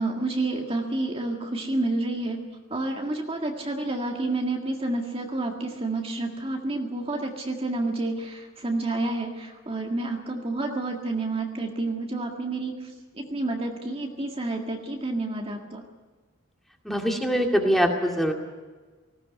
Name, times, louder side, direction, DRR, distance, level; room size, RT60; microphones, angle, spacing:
voice 1, 0.0-2.4 2.7-15.8, right 2 dB, 30° right, 2 dB, 1.9 m, -29 dB
voice 2, 16.9-18.3, equal, ahead, 2 dB, 2.3 m, -23 dB
19.0 x 17.0 x 9.5 m, 1.3 s
head